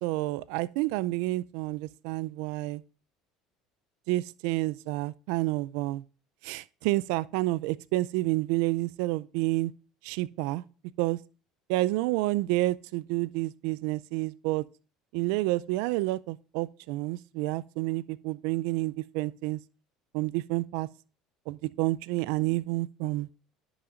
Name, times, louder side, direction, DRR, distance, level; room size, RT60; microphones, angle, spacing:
voice 1, 0.0-2.8 4.1-6.0 6.4-9.7 10.0-10.6 11.0-11.2 11.7-14.6 15.1-19.6 20.1-20.9 21.5-23.3, right 19 dB, 80° right, 0.3 m, -29 dB
10.5 x 7.0 x 2.5 m
supercardioid pair, 115°, 0 cm